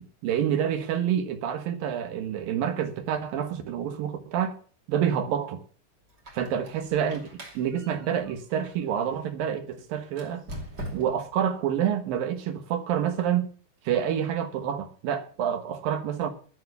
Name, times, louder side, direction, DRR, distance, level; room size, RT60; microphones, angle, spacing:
voice 1, 0.2-4.6 4.9-5.6 6.3-7.3 7.5-10.4 10.9-13.5 13.8-16.3, right 9 dB, 65° right, 2.8 m, -28 dB
Squeak, 6.1-9.3 10.1-11.4, equal, 30° right, 2.6 m, -43 dB
10.5 x 9.5 x 7.1 m
omnidirectional pair, 5.0 m